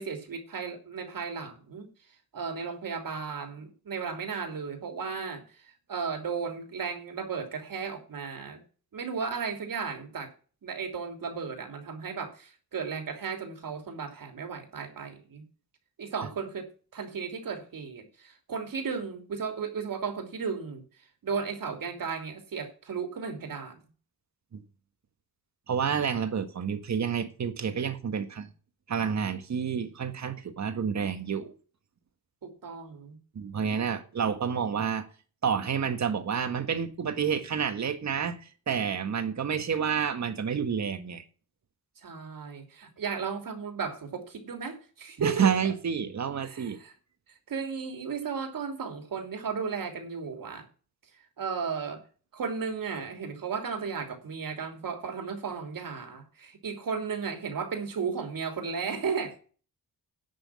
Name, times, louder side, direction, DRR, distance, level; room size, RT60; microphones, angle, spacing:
voice 1, 0.0-1.9 2.3-8.6 8.9-10.3 10.6-15.4 16.0-16.7 16.9-20.8 21.2-23.8 32.4-33.2 42.0-45.7 46.4-46.9 47.5-50.7 51.4-52.0 52.3-59.4, right 5 dB, 65° right, 3.1 m, -35 dB
voice 2, 25.7-28.5 28.9-31.5 33.3-35.1 35.4-41.2 45.2-46.8, right 7 dB, 50° right, 1.5 m, -29 dB
10.5 x 6.3 x 7.5 m
wide cardioid pair, 155°, 37 cm